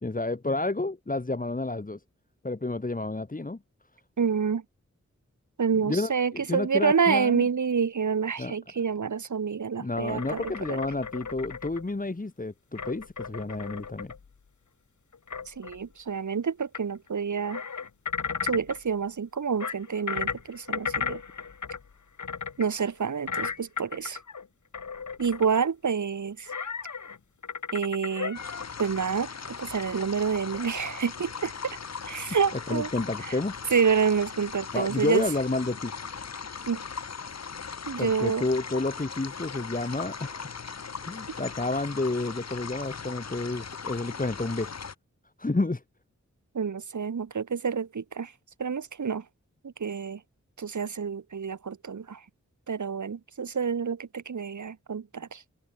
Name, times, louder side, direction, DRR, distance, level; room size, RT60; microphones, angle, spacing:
voice 1, 0.0-2.0 2.4-3.6 5.7-7.5 8.4-8.6 9.8-14.1 32.7-33.6 34.7-35.9 38.0-40.5 41.1-44.7 45.4-45.8, left 2 dB, 30° left, 1.7 m, -30 dB
voice 2, 4.2-4.6 5.6-10.8 15.5-17.6 18.4-21.2 22.6-24.2 25.2-26.5 27.7-28.4 28.8-31.8 32.1-32.9 33.2-33.3 33.7-35.2 36.7-36.8 37.9-38.4 46.5-48.3 48.6-49.2 49.6-50.2 50.6-52.2 52.7-55.4, right 6 dB, 75° right, 1.7 m, -28 dB
sound 1, 10.0-11.9 12.8-14.3 15.1-15.8 16.7-16.8 17.1-17.2 17.4-18.8 19.6-21.9 22.2-22.6 23.3-24.5 24.7-25.5 26.5-27.2 27.4-28.7, left 5 dB, 75° left, 2.3 m, -35 dB
sound 2, 28.3-44.9, left 5 dB, 60° left, 1.3 m, -39 dB
open air
cardioid pair, 45°, 30 cm